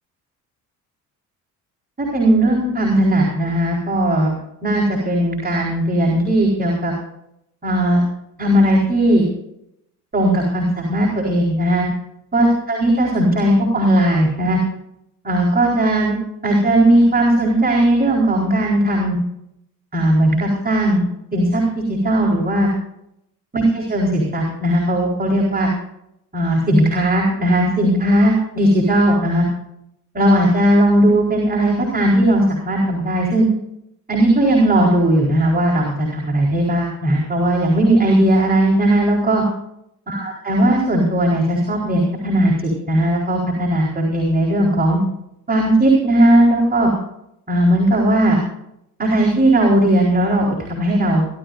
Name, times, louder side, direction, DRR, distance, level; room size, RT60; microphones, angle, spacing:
voice 1, 2.0-4.3 4.6-6.9 7.6-8.0 8.4-9.3 10.1-11.9 12.3-14.6 15.2-16.2 16.4-19.2 19.9-21.1 21.3-21.6 21.9-22.7 23.5-25.7 26.3-29.4 30.1-33.5 34.1-39.4 40.1-45.0 45.5-46.9 47.5-48.4 49.0-51.3, right 1 dB, 20° right, -3 dB, 4.3 m, -17 dB
25.5 x 13.0 x 2.6 m, 0.78 s
figure-of-eight pair, 50°, 46 cm